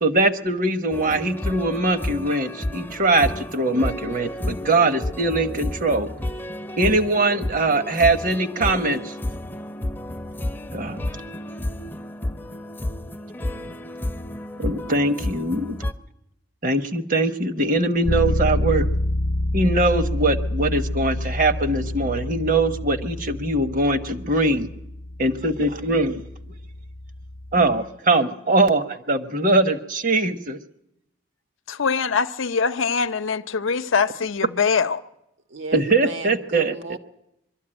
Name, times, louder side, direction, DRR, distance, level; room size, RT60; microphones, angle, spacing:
voice 1, 0.0-6.1 6.8-9.1 10.7-11.0 14.6-15.8 16.6-18.9 19.5-24.7 25.2-26.2 27.5-30.6 35.7-36.7, right 2 dB, 40° right, 1.0 m, -22 dB
sound 1, 0.9-15.9, left 1 dB, 10° left, 0.6 m, -31 dB
Bass guitar, 18.1-27.8, left 1 dB, 45° left, 0.7 m, -28 dB
voice 2, 31.7-35.0, left 5 dB, 85° left, 0.7 m, -23 dB
voice 3, 35.5-37.0, right 3 dB, 70° right, 1.6 m, -35 dB
23.0 x 13.0 x 8.8 m
head